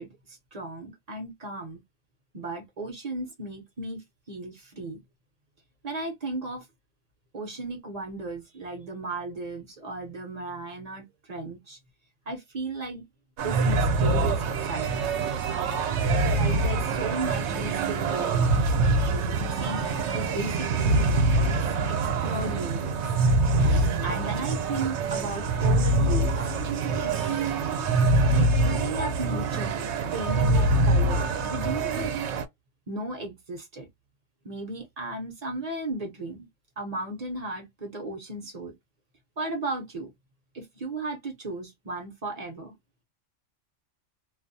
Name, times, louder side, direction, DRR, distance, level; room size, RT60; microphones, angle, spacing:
voice 1, 0.0-1.8 2.3-5.0 5.8-6.6 7.3-11.8 12.3-13.1 13.4-15.2 16.3-18.6 19.0-19.9 20.1-21.6 21.9-23.0 23.6-26.3 27.0-27.2 28.2-29.8 30.1-32.1 32.9-33.9 34.4-36.5 36.8-38.8 39.4-40.1 40.5-42.7, right 2 dB, 40° right, 0.7 m, -35 dB
sound 1, 13.4-32.5, right 2 dB, 70° right, 0.8 m, -24 dB
2.4 x 2.1 x 2.6 m
omnidirectional pair, 1.3 m